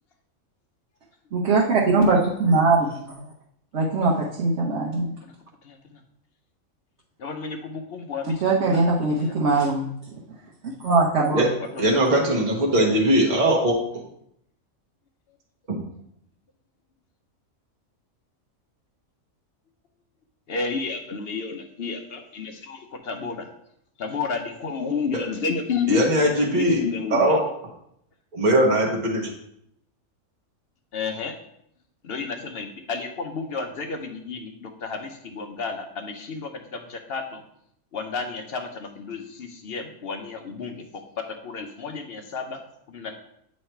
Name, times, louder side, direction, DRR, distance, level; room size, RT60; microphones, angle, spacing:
voice 1, 1.3-3.2 3.7-5.1 8.4-9.9 10.8-11.5, right 3 dB, 60° right, -4 dB, 1.2 m, -21 dB
voice 2, 5.6-6.0 7.2-8.8 9.2-9.4 11.7-11.9 20.5-23.5 24.0-26.0 26.4-27.4 30.9-31.3 32.0-37.4 37.9-40.9 41.2-42.6 42.9-43.2, left 5 dB, 55° left, 5 dB, 0.8 m, -31 dB
voice 3, 11.8-14.0 15.7-15.8 25.9-27.4 28.3-29.3, right 1 dB, 35° right, -2 dB, 1.1 m, -20 dB
8.4 x 3.2 x 4.3 m, 0.74 s
omnidirectional pair, 1.4 m